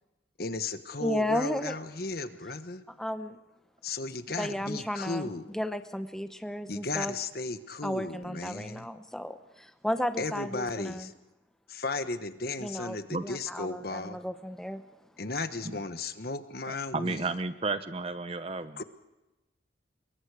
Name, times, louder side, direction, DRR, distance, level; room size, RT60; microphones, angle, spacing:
voice 1, 0.4-2.8 3.8-5.5 6.7-8.9 10.2-11.1 11.7-14.2 15.2-17.3 18.8-18.9, left 3 dB, 55° left, 10 dB, 1.2 m, -35 dB
voice 2, 1.0-1.7 2.9-3.4 4.4-7.1 7.8-11.1 12.6-14.8, equal, 5° left, 8 dB, 0.8 m, -34 dB
voice 3, 16.7-18.8, right 3 dB, 30° right, 11 dB, 0.8 m, -33 dB
25.5 x 22.5 x 4.9 m, 1.0 s
head